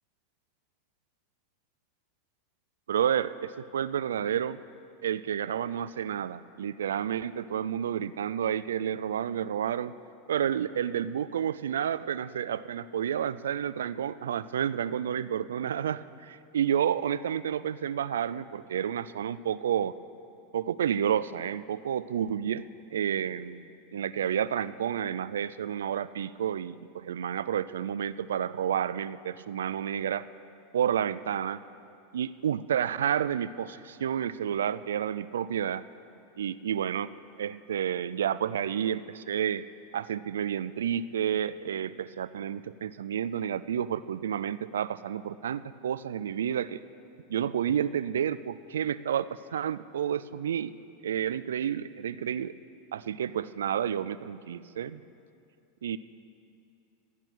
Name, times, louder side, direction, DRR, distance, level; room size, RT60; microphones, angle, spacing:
voice 1, 2.9-4.6 5.0-9.9 10.3-20.0 20.5-22.6 22.9-30.2 30.7-31.6 32.1-35.8 36.4-37.1 37.4-39.6 39.9-46.8 47.3-50.7 51.0-52.5 52.9-55.0 55.8-56.0, right 9 dB, 85° right, 16 dB, 0.3 m, -30 dB
13.5 x 10.5 x 6.2 m, 2.5 s
hypercardioid pair, 105°, 0 cm